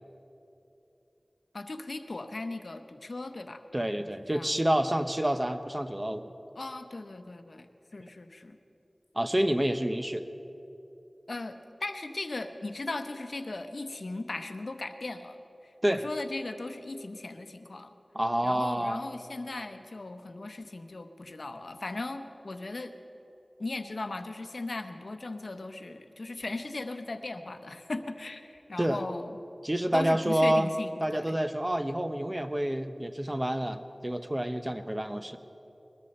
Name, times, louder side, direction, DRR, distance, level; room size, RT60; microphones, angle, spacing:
voice 1, 1.5-3.6 4.0-4.5 6.5-8.6 11.3-15.4 15.6-17.9 18.4-23.0 23.6-29.4 29.9-31.4, left 2 dB, 75° left, 8 dB, 0.8 m, -38 dB
voice 2, 3.7-6.3 9.1-10.2 15.8-16.0 18.1-19.0 28.8-29.0 29.6-30.7 31.0-35.4, right 1 dB, 20° right, 9 dB, 0.8 m, -28 dB
21.0 x 13.0 x 4.3 m, 2.9 s
wide cardioid pair, 50°, 0 cm